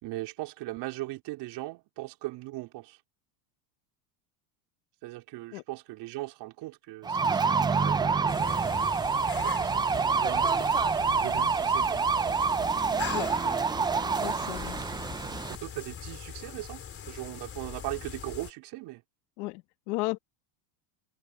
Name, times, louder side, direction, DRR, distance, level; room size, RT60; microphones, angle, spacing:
voice 1, 0.0-3.0 5.0-8.1 9.4-12.0 15.5-16.8 17.1-19.0, right 19 dB, 55° right, 4.4 m, -39 dB
sound 1, 7.0-15.5, right 5 dB, 10° right, 0.4 m, -27 dB
sound 2, 8.3-18.5, left 8 dB, 25° left, 3.7 m, -41 dB
voice 2, 14.2-14.8 19.4-20.2, left 23 dB, 70° left, 2.0 m, -34 dB
supercardioid pair, 130°, 49 cm